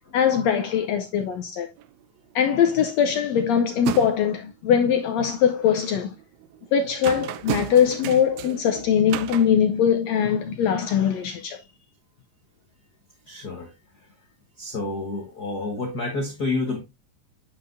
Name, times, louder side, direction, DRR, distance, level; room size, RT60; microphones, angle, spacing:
voice 1, 0.1-1.7 2.3-6.1 6.7-11.6, left 8 dB, 80° left, 1.5 m, -21 dB
sound 1, 1.8-2.0 2.3-2.9 3.2-4.4 5.0-5.7 6.1-10.2, right 13 dB, 85° right, 2.3 m, -35 dB
voice 2, 13.3-13.7 14.6-16.8, left 2 dB, 65° left, 0.9 m, -29 dB
9.3 x 5.8 x 2.6 m
omnidirectional pair, 3.9 m